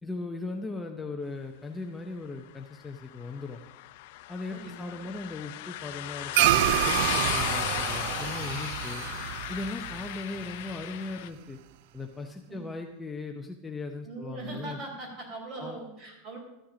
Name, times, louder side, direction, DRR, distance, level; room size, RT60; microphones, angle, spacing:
voice 1, 0.0-3.6 4.3-9.0 9.5-11.6 11.9-14.8 15.6-15.8, left 3 dB, 10° left, 2 dB, 0.7 m, -38 dB
sound 1, 3.1-11.3, left 15 dB, 60° left, 0.6 m, -35 dB
voice 2, 4.5-5.0 12.5-12.7 14.0-16.4, right 2 dB, 35° right, 0 dB, 4.1 m, -40 dB
sound 2, 6.3-11.0, right 15 dB, 60° right, 0.3 m, -28 dB
13.5 x 9.1 x 5.0 m, 0.98 s
supercardioid pair, 150°, 0 cm